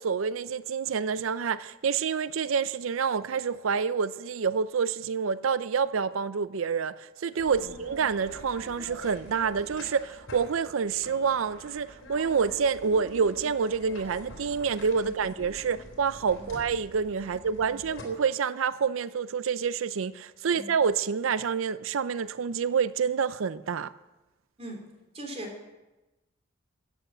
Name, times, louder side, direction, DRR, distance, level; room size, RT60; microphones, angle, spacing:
voice 1, 0.0-23.9, right 6 dB, 85° right, 15 dB, 0.5 m, -28 dB
sound 1, 7.4-18.0, left 1 dB, 85° left, 3.5 m, -46 dB
voice 2, 25.1-25.7, equal, 30° right, 2 dB, 3.3 m, -40 dB
14.0 x 9.3 x 7.8 m, 1.1 s
head